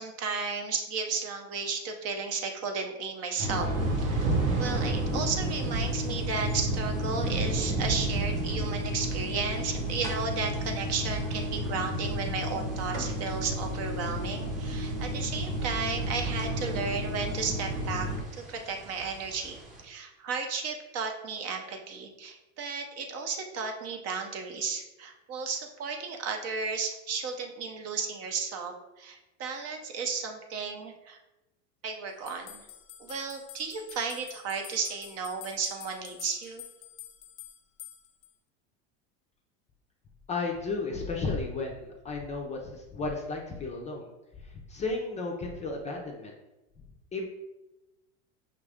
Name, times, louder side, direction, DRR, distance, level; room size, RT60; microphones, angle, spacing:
voice 1, 0.0-3.7 4.0-4.3 4.5-31.2 31.8-32.6 33.0-36.6, right 5 dB, 40° right, 4 dB, 0.7 m, -34 dB
sound 1, 3.4-18.2, equal, 75° right, 1.2 m, -32 dB
sound 2, 3.8-19.8, right 2 dB, 20° right, 0.9 m, -36 dB
sound 3, 32.3-38.3, left 12 dB, 65° left, 0.6 m, -48 dB
voice 2, 40.3-44.1 44.7-46.3 47.1-47.2, left 3 dB, 20° left, 0 dB, 0.5 m, -33 dB
5.5 x 2.5 x 3.4 m, 0.99 s
supercardioid pair, 125°, 37 cm